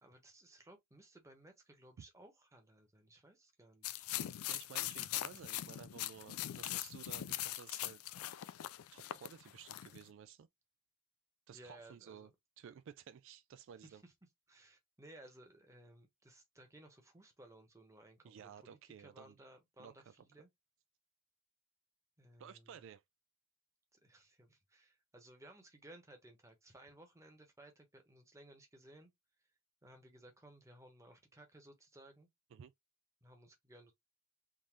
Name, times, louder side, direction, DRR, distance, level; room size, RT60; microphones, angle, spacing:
voice 1, 0.0-4.0 11.5-12.3 13.8-14.1 14.5-20.5 22.2-22.8 24.0-29.1 29.8-32.3 33.2-33.9, right 1 dB, 15° right, 1.0 m, -59 dB
sound 1, 3.8-10.0, left 14 dB, 85° left, 0.3 m, -41 dB
voice 2, 4.5-8.0 8.9-10.5 11.5-12.3 12.6-14.0 18.2-19.4 19.8-20.3 22.4-23.0 32.5-32.7, right 8 dB, 60° right, 0.3 m, -54 dB
3.7 x 2.5 x 3.1 m
head